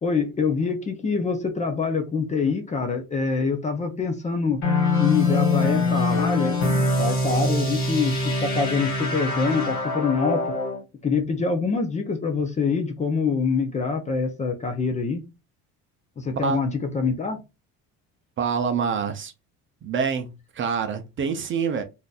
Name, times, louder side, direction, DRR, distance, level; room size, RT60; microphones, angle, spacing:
voice 1, 0.0-4.7 5.0-6.6 7.0-10.5 11.0-15.2 16.2-16.7 16.9-17.4, left 4 dB, 20° left, 0.6 m, -25 dB
sound 1, 4.6-10.8, left 2 dB, 35° left, 1.8 m, -23 dB
voice 2, 18.4-19.3 19.8-21.8, right 6 dB, 35° right, 0.5 m, -26 dB
3.7 x 2.7 x 2.3 m
cardioid pair, 145°, 35 cm